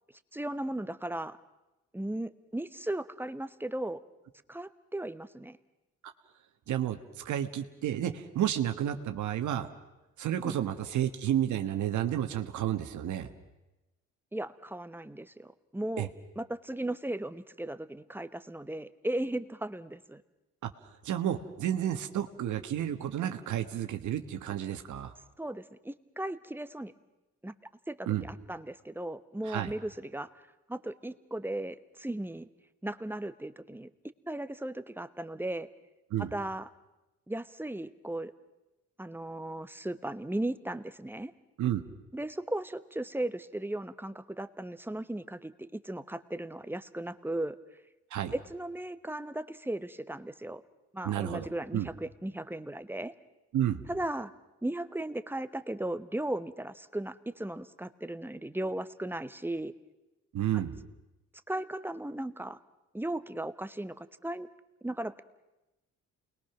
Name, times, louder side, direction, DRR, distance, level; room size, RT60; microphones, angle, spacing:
voice 1, 0.3-1.4 1.9-4.0 4.5-5.6 10.4-10.6 14.3-16.1 16.4-20.2 25.4-26.9 27.4-27.5 27.9-30.3 30.7-32.5 32.8-33.9 34.3-35.7 36.2-36.7 37.3-38.3 39.0-41.3 42.1-47.6 48.3-50.6 50.9-53.1 53.9-54.3 54.6-59.7 61.5-62.6 62.9-64.5 64.8-65.2, right 1 dB, 5° right, 12 dB, 0.9 m, -36 dB
voice 2, 6.7-9.7 10.2-13.3 16.0-16.1 20.6-20.7 21.0-25.1 28.1-28.3 29.4-29.7 36.1-36.3 41.6-41.8 48.1-48.3 51.0-51.5 51.7-51.9 53.5-53.8 60.3-60.8, right 11 dB, 75° right, 7 dB, 1.4 m, -31 dB
28.5 x 21.0 x 5.9 m, 1.0 s
cardioid pair, 90°, 30 cm